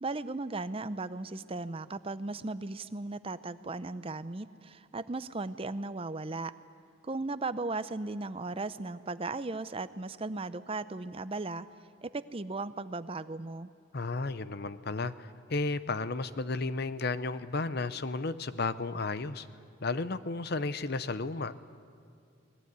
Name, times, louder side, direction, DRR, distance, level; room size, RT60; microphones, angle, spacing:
voice 1, 0.0-6.5 7.0-11.7 12.0-13.7, right 3 dB, 25° right, 14 dB, 0.6 m, -36 dB
voice 2, 13.9-19.5 19.8-21.5, left 3 dB, 50° left, 14 dB, 0.7 m, -33 dB
23.5 x 19.5 x 9.5 m, 2.3 s
head